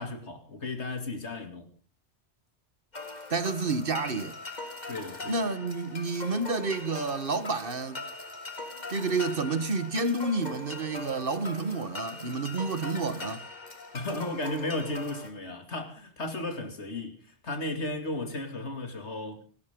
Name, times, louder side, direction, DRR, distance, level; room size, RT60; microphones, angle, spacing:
voice 1, 0.0-1.7 4.9-5.4 13.9-19.4, left 2 dB, 80° left, 3.0 m, -35 dB
sound 1, 2.9-15.3, left 3 dB, 40° left, 2.2 m, -41 dB
voice 2, 3.3-4.4 5.3-8.0 8.9-13.4, right 3 dB, 55° right, 1.5 m, -30 dB
29.5 x 13.0 x 3.8 m
omnidirectional pair, 1.1 m